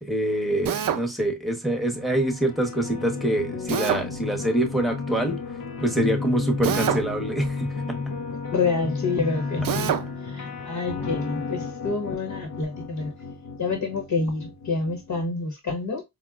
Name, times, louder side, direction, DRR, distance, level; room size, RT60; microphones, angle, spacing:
voice 1, 0.0-5.4 5.8-8.0, right 1 dB, ahead, 0.9 m, -25 dB
Drill, 0.6-1.0 3.7-4.0 6.6-7.1 9.6-10.0, right 9 dB, 75° right, 0.5 m, -25 dB
sound 1, 1.8-15.2, left 4 dB, 80° left, 0.7 m, -33 dB
voice 2, 8.5-10.0 10.2-13.1 13.6-16.0, left 4 dB, 65° left, 1.0 m, -28 dB
4.7 x 2.1 x 2.3 m
wide cardioid pair, 90°, 34 cm